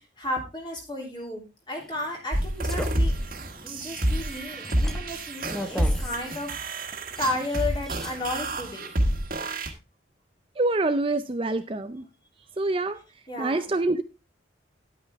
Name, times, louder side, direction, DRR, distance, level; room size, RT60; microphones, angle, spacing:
voice 1, 0.2-3.1 3.6-6.6 7.2-8.9 13.3-13.7, left 2 dB, 25° left, 0 dB, 3.2 m, -33 dB
sound 1, 1.8-8.1, left 1 dB, 5° left, 0.8 m, -40 dB
sound 2, 2.3-9.7, right 1 dB, 45° right, 1.6 m, -28 dB
voice 2, 10.6-12.0 12.6-13.0 13.4-14.0, right 2 dB, 30° right, 9 dB, 0.5 m, -26 dB
10.5 x 8.9 x 3.5 m, 0.28 s
head